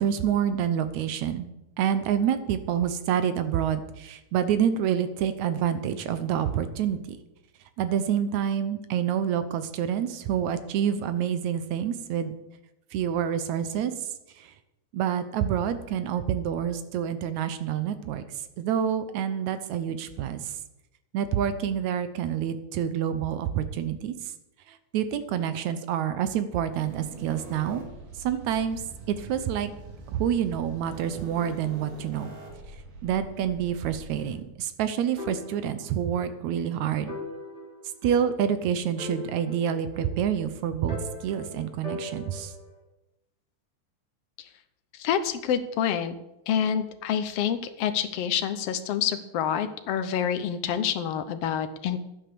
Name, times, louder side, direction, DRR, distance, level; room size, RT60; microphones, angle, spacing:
voice 1, 0.0-1.5 1.8-7.2 7.8-12.3 12.9-13.9 14.4-14.5 14.9-18.2 18.6-20.5 21.1-24.1 24.7-27.8 28.2-28.8 29.1-29.7 30.1-32.3 33.0-37.1 38.0-42.5, right 9 dB, 70° right, 11 dB, 2.0 m, -27 dB
sound 1, 26.7-34.4, right 2 dB, 90° right, 4.0 m, -44 dB
sound 2, 35.2-36.3 36.6-36.7 37.1-38.6 39.0-40.4 40.9-42.7, left 3 dB, 20° right, 4.5 m, -40 dB
voice 2, 44.9-46.2 46.5-52.0, left 8 dB, 75° left, 10 dB, 1.4 m, -27 dB
11.5 x 9.6 x 6.8 m, 0.91 s
omnidirectional pair, 3.6 m